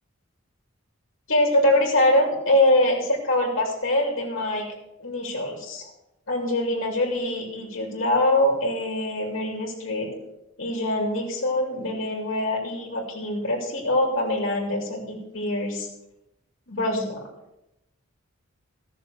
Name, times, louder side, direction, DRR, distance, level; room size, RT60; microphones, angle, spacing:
voice 1, 1.3-4.6 5.0-5.9 6.3-10.1 10.6-15.9 16.7-17.2, left 1 dB, 65° left, -1 dB, 2.7 m, -24 dB
14.0 x 6.7 x 6.3 m, 0.90 s
head